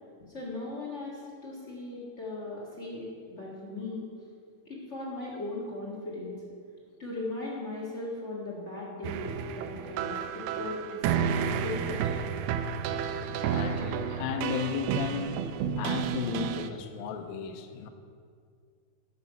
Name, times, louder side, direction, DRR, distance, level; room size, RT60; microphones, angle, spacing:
voice 1, 0.2-4.1 4.6-6.4 7.0-12.2, left 2 dB, 45° left, -4 dB, 0.9 m, -38 dB
sound 1, 9.0-16.7, right 7 dB, 90° right, 2.6 m, -31 dB
voice 2, 13.1-15.4 15.8-17.9, left 8 dB, 80° left, 7 dB, 2.4 m, -35 dB
13.5 x 7.4 x 5.7 m, 2.2 s
omnidirectional pair, 4.4 m